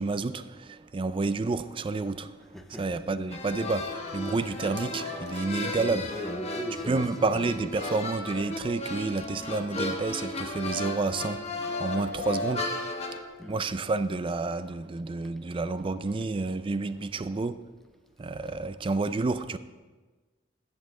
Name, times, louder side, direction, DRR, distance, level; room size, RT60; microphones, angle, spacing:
voice 1, 0.0-6.1 6.9-12.7 13.5-17.6 18.2-19.6, right 3 dB, 25° right, 0.4 m, -30 dB
voice 2, 2.5-2.8 5.7-7.0 13.4-13.6, equal, ahead, 0.8 m, -38 dB
sound 1, 3.3-13.2, left 2 dB, 35° left, 1.1 m, -35 dB
13.5 x 8.3 x 3.8 m
head